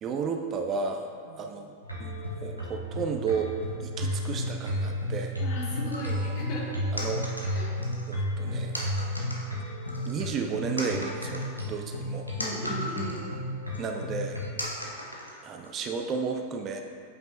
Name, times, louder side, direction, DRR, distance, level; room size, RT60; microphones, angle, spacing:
voice 1, 0.0-1.1 1.4-1.7 2.0-2.1 2.4-3.5 3.8-5.3 6.9-7.2 8.1-8.8 10.1-12.3 13.8-14.4 15.4-16.8, right 5 dB, 30° right, 3 dB, 0.4 m, -32 dB
sound 1, 1.8-14.5, equal, 90° right, 1.0 m, -33 dB
voice 2, 5.4-6.8 7.5-7.7 12.4-13.2, left 1 dB, 45° left, -2 dB, 1.4 m, -37 dB
sound 2, 5.9-6.3 7.0-8.1 8.7-9.5 9.9-10.4 10.8-13.3 13.7-13.8 14.6-15.7, equal, 85° left, 0.8 m, -37 dB
8.2 x 5.3 x 2.6 m, 2.2 s
figure-of-eight pair, 90°, 0 cm